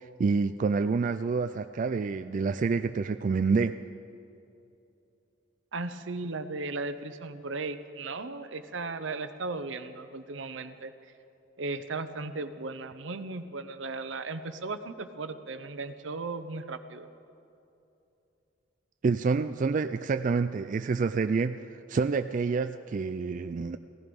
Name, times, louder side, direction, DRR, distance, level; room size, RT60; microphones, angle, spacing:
voice 1, 0.0-3.8 19.0-21.6 21.9-23.8, right 4 dB, 40° right, 9 dB, 0.3 m, -28 dB
voice 2, 5.7-10.9 11.6-17.1, right 3 dB, 75° right, 10 dB, 0.8 m, -36 dB
17.5 x 14.5 x 5.3 m, 2.8 s
head